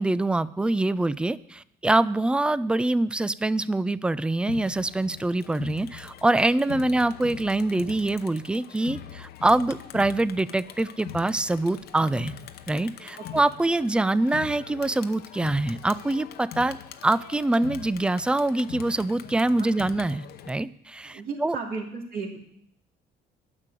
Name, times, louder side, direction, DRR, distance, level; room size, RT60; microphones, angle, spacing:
voice 1, 0.0-12.3 12.7-16.8 17.0-21.6, right 2 dB, 5° right, 17 dB, 0.3 m, -25 dB
Crowd, 4.5-20.5, left 10 dB, 70° left, 0.8 m, -42 dB
voice 2, 21.0-22.4, right 4 dB, 60° right, 0 dB, 2.8 m, -35 dB
9.6 x 6.7 x 9.0 m, 0.72 s
cardioid pair, 110°, 17 cm